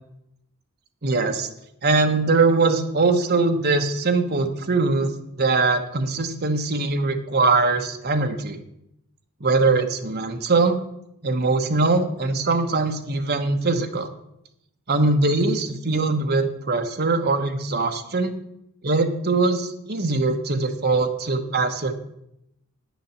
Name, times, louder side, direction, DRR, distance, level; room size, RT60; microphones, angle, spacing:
voice 1, 1.0-1.5 1.8-5.1 5.4-8.6 9.4-10.8 11.2-14.1 14.9-18.3 18.8-21.9, right 3 dB, 45° right, 5 dB, 1.1 m, -22 dB
9.5 x 7.5 x 7.2 m, 0.80 s
head